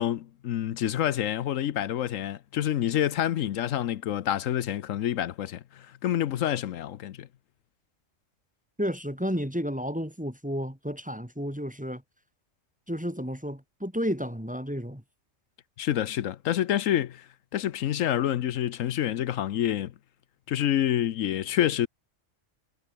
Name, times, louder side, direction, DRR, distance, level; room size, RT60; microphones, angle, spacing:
voice 1, 0.0-5.6 6.0-7.3 15.8-17.2 17.5-19.9 20.5-21.9, left 11 dB, 80° left, 1.1 m, -27 dB
voice 2, 8.8-12.0 12.9-15.0, equal, 5° right, 2.4 m, -32 dB
omnidirectional pair, 1.3 m